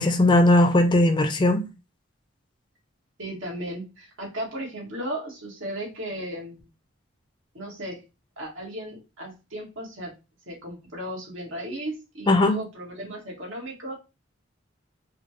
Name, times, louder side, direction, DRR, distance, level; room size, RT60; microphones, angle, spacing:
voice 1, 0.0-1.7 12.3-12.6, left 1 dB, 25° left, 0.3 m, -18 dB
voice 2, 3.2-6.6 7.5-8.0 8.4-10.1 10.5-13.9, right 1 dB, 80° right, 1.6 m, -35 dB
4.1 x 2.2 x 2.9 m
head